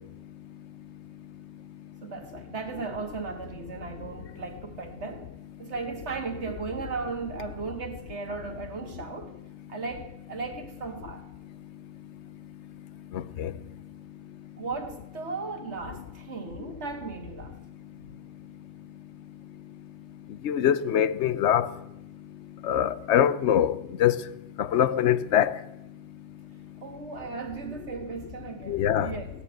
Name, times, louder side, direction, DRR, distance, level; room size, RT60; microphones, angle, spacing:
voice 1, 2.0-5.3 5.6-9.4 9.7-11.3 14.6-17.6 18.0-18.2 26.8-29.3, right 4 dB, 60° right, 1.9 m, -36 dB
voice 2, 13.1-13.5 20.4-21.7 22.6-24.1 24.6-25.6 28.7-29.1, left 10 dB, 65° left, 0.9 m, -23 dB
16.5 x 7.1 x 8.9 m
omnidirectional pair, 1.3 m